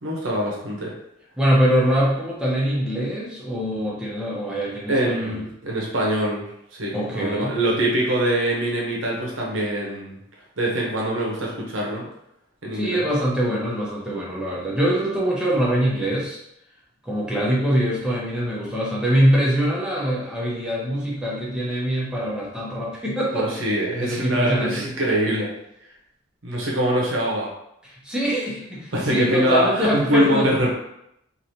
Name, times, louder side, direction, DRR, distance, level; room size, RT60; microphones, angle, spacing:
voice 1, 0.0-0.9 4.9-6.4 6.7-10.2 10.6-12.1 12.6-13.1 23.3-25.5 26.4-27.5 28.9-30.7, right 1 dB, 75° right, -2 dB, 0.9 m, -23 dB
voice 2, 1.4-5.4 6.9-7.6 12.7-16.4 17.0-23.7 24.0-24.9 27.8-30.5, equal, 5° right, -6 dB, 0.8 m, -23 dB
3.1 x 2.6 x 2.7 m, 0.80 s
head